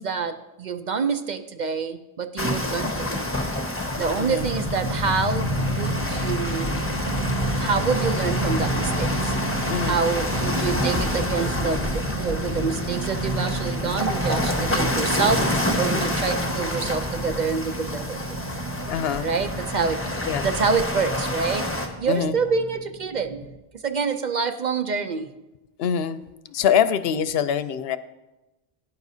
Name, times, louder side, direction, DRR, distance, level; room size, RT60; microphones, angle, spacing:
voice 1, 0.0-3.2 4.0-6.7 7.6-9.3 9.8-18.2 19.2-23.5 23.7-25.3, right 5 dB, 55° right, 8 dB, 0.7 m, -27 dB
sound 1, 2.4-21.9, left 1 dB, 15° left, 1.2 m, -28 dB
sound 2, 4.4-23.5, right 1 dB, 35° right, 1.3 m, -31 dB
voice 2, 18.9-19.3 20.3-20.5 22.1-22.4 25.8-26.2 26.5-28.0, left 8 dB, 75° left, 13 dB, 0.8 m, -24 dB
17.0 x 9.9 x 2.7 m, 1.0 s
omnidirectional pair, 1.0 m